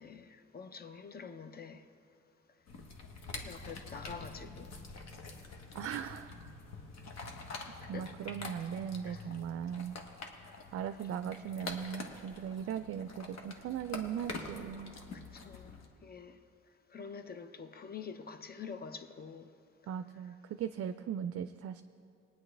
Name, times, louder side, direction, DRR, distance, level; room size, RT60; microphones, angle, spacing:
voice 1, 0.0-1.9 3.4-4.8 7.8-8.2 9.1-9.4 10.4-11.0 15.1-15.8 16.0-16.4 16.9-19.5, left 6 dB, 30° left, 0.7 m, -47 dB
sound 1, 2.7-15.9, left 3 dB, 60° left, 1.3 m, -46 dB
voice 2, 5.7-6.4 7.5-10.0 10.7-15.0 19.9-21.8, right 8 dB, 50° right, 0.4 m, -39 dB
19.0 x 9.6 x 3.3 m
cardioid pair, 90°, 30 cm